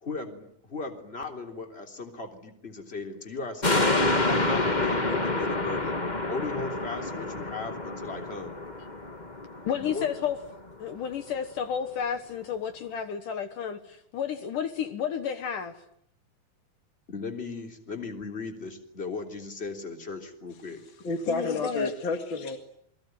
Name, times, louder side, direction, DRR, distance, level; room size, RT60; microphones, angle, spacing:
voice 1, 0.0-3.8 4.3-6.0 6.3-8.6 9.8-10.1 17.1-20.8, left 3 dB, 15° left, 3.2 m, -37 dB
sound 1, 3.6-10.3 10.7-10.8, left 2 dB, 85° left, 0.4 m, -28 dB
voice 2, 9.6-10.4 10.8-15.7 21.3-21.9, left 8 dB, 65° left, 2.8 m, -31 dB
voice 3, 20.6-22.6, left 3 dB, 40° left, 2.2 m, -31 dB
28.5 x 22.0 x 9.3 m
omnidirectional pair, 4.2 m